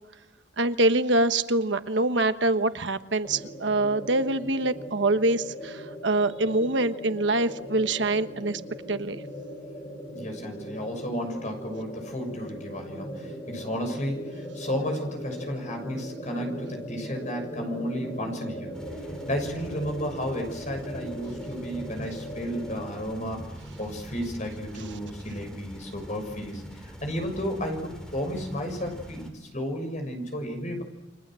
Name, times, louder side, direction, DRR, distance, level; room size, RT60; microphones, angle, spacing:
voice 1, 0.6-8.6 8.9-9.2, right 2 dB, 75° right, 10 dB, 1.2 m, -25 dB
sound 1, 3.2-23.0, equal, 20° left, 6.6 m, -39 dB
voice 2, 10.1-18.7 19.0-23.5 23.8-30.8, equal, 40° left, 4 dB, 6.5 m, -33 dB
sound 2, 18.7-29.3, equal, 5° left, 3.0 m, -43 dB
30.0 x 24.5 x 7.6 m, 0.98 s
head